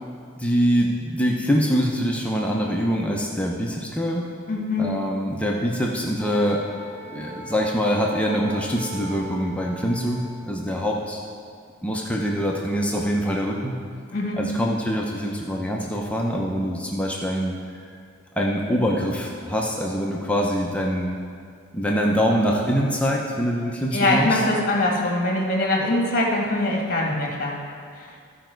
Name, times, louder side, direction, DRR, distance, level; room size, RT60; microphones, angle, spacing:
voice 1, 0.4-4.3 4.8-6.6 7.1-11.2 11.8-13.8 14.4-17.5 18.4-21.2 21.7-24.4, equal, 5° left, -2 dB, 0.7 m, -24 dB
voice 2, 4.5-5.0 14.1-14.4 23.9-27.6 28.0-28.1, left 2 dB, 40° left, -1 dB, 1.6 m, -23 dB
Wind instrument woodwind instrument, 6.2-10.5, right 3 dB, 30° right, 1.4 m, -40 dB
14.5 x 5.1 x 4.5 m, 2.2 s
head